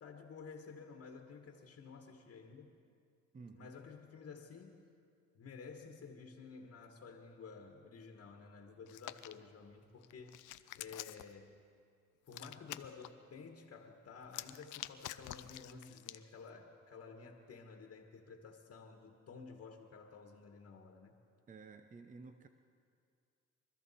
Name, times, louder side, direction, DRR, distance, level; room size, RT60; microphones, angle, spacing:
voice 1, 0.0-2.8 3.5-4.9 5.3-10.4 10.7-11.6 12.3-21.2, left 5 dB, 50° left, 3 dB, 1.4 m, -52 dB
voice 2, 3.3-3.7 21.5-22.5, right 4 dB, 25° right, 8 dB, 0.7 m, -53 dB
Hands, 8.9-9.3 10.0-11.3 12.3-13.1 14.2-16.2, left 15 dB, 90° left, 0.5 m, -47 dB
23.5 x 13.5 x 4.2 m, 2.3 s
cardioid pair, 90°, 30 cm